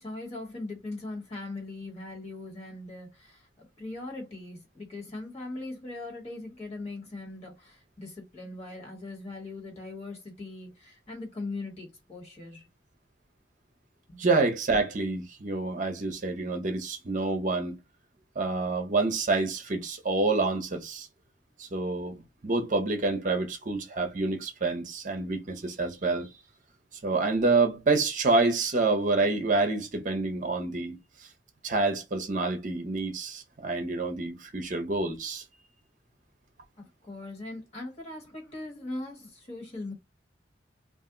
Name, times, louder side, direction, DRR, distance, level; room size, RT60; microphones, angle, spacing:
voice 1, 0.0-12.7 14.1-14.2 36.8-39.9, left 2 dB, 35° left, 1.1 m, -40 dB
voice 2, 14.2-17.8 18.4-21.1 21.6-26.3 27.0-31.0 31.6-35.4, right 3 dB, 45° right, 0.7 m, -27 dB
2.5 x 2.0 x 3.6 m
head